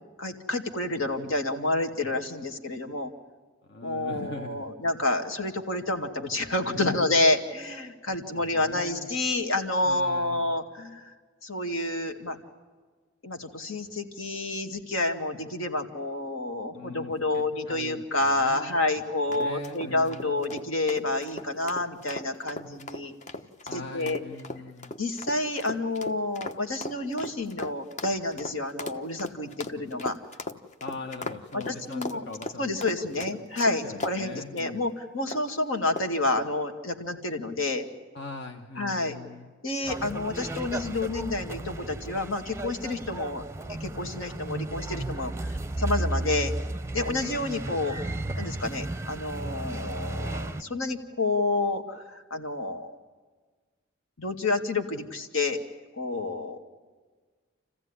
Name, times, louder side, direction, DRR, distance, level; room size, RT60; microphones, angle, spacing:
voice 1, 0.2-3.1 3.8-11.1 11.4-12.4 13.2-23.1 23.7-24.2 25.0-30.2 31.5-32.2 32.6-37.8 38.8-39.2 39.6-43.4 43.7-46.5 46.9-48.0 48.4-52.9 54.2-55.6 55.9-56.6, left 2 dB, 70° left, 5 dB, 2.2 m, -29 dB
voice 2, 3.6-4.7 6.7-7.1 8.1-9.1 9.8-10.6 16.7-18.8 19.3-20.4 23.7-24.9 30.8-32.8 33.3-33.4 33.8-34.8 38.1-39.5 46.0-46.5 47.1-47.5, left 3 dB, 55° left, 3 dB, 1.3 m, -41 dB
sound 1, 19.3-34.2 34.6-34.8 35.3-35.5 36.0-36.3, left 2 dB, 35° left, 1.1 m, -38 dB
sound 2, 39.8-50.6, right 1 dB, 15° right, 0.7 m, -34 dB
28.5 x 15.5 x 9.9 m, 1.4 s
head